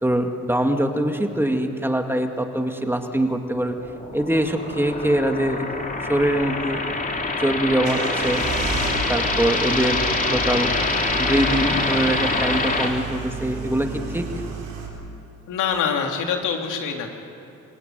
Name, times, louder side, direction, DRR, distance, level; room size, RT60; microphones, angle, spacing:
voice 1, 0.0-3.8 4.1-5.7 6.0-6.8 7.4-8.4 9.1-10.7 11.2-14.3, right 1 dB, 5° right, 4 dB, 2.2 m, -23 dB
sound 1, 3.7-12.9, left 2 dB, 25° left, 3.3 m, -25 dB
sound 2, 7.8-14.9, right 3 dB, 85° right, 6.3 m, -32 dB
voice 2, 15.5-17.1, left 6 dB, 85° left, 3 dB, 3.0 m, -24 dB
27.0 x 18.0 x 9.4 m, 2.9 s
cardioid pair, 90°, 30 cm